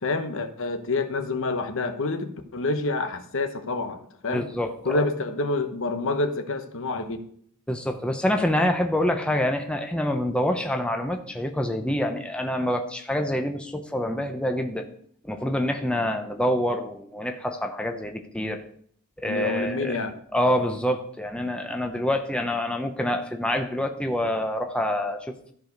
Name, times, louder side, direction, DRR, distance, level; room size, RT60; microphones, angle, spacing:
voice 1, 0.0-4.4 4.8-7.2 19.3-20.1, left 3 dB, 65° left, 7 dB, 1.0 m, -27 dB
voice 2, 4.3-5.1 7.7-14.9 15.2-18.6 19.2-20.0 20.3-25.5, left 1 dB, 5° left, 4 dB, 0.7 m, -26 dB
13.5 x 4.8 x 5.2 m, 0.62 s
head